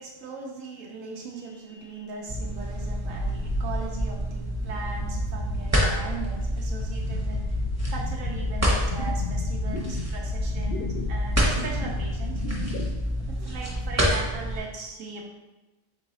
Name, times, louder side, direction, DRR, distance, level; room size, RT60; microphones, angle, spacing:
voice 1, 0.0-7.4 7.9-12.4 13.4-15.3, right 4 dB, 85° right, -1 dB, 1.0 m, -39 dB
sound 1, 2.3-14.6, equal, 15° right, 0.7 m, -28 dB
sound 2, 3.1-12.9, left 1 dB, 55° left, 0.7 m, -32 dB
3.8 x 3.0 x 4.0 m, 1.1 s
omnidirectional pair, 1.3 m